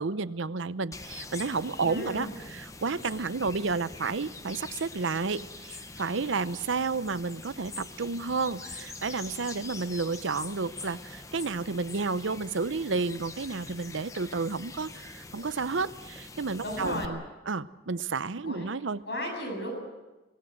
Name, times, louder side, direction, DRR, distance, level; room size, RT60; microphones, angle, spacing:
voice 1, 0.0-17.2 17.5-19.0, right 4 dB, 85° right, 14 dB, 0.7 m, -31 dB
sound 1, 0.9-17.1, left 3 dB, 15° left, 0.8 m, -44 dB
voice 2, 1.9-2.3 16.6-17.1 18.4-18.7 19.1-19.7, left 1 dB, 60° left, 3 dB, 7.4 m, -34 dB
22.5 x 17.5 x 7.9 m, 1.1 s
head